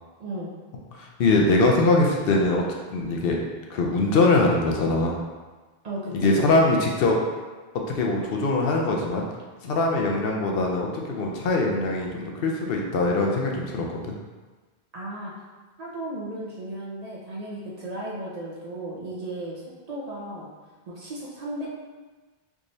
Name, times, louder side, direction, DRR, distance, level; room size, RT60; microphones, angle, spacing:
voice 1, 0.2-0.5 5.8-6.4 14.9-15.3 15.8-19.6 19.9-20.5 20.9-21.7, right 1 dB, 50° right, -5 dB, 0.6 m, -35 dB
voice 2, 0.9-2.6 2.9-3.4 3.7-5.2 6.1-7.2 7.9-9.3 9.6-14.2, left 2 dB, 70° left, 0 dB, 0.7 m, -22 dB
3.5 x 3.0 x 2.6 m, 1.3 s
omnidirectional pair, 1.0 m